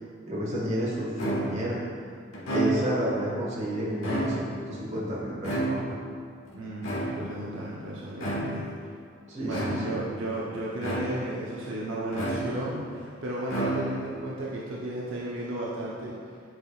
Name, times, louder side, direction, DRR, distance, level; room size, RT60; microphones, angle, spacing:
voice 1, 0.3-1.8 2.5-6.0 9.3-9.9, equal, 35° right, -6 dB, 1.4 m, -30 dB
sound 1, 1.2-1.7 2.3-3.1 3.9-4.7 5.4-6.1 6.8-7.5 8.2-8.7 9.5-10.1 10.8-11.4 12.1-12.8 13.4-14.2, right 1 dB, 80° left, 1.3 m, -30 dB
voice 2, 6.5-8.7 9.4-16.1, right 1 dB, 70° right, -6 dB, 0.8 m, -34 dB
7.7 x 5.0 x 2.4 m, 2.2 s
head